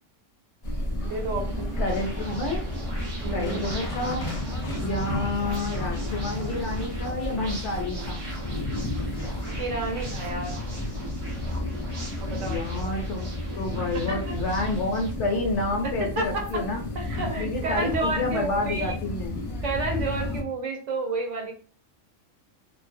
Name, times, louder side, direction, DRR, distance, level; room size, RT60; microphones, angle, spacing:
sound 1, 0.6-20.4, left 2 dB, 35° left, 0.6 m, -32 dB
Engine, 1.0-6.9, right 3 dB, 25° right, 0.7 m, -43 dB
voice 1, 1.0-1.7 3.2-3.7 9.5-10.6 12.2-12.6 14.1-14.4 16.0-16.5 17.0-18.9 19.6-21.5, right 2 dB, 65° right, 2 dB, 0.8 m, -30 dB
voice 2, 1.8-2.6 3.3-4.3 4.8-8.2 12.5-13.3 13.6-16.8 17.4-19.4, left 2 dB, 65° left, 1 dB, 0.9 m, -29 dB
sound 2, 1.9-15.1, right 1 dB, 50° right, 0.4 m, -37 dB
2.5 x 2.0 x 2.5 m, 0.42 s
omnidirectional pair, 1.4 m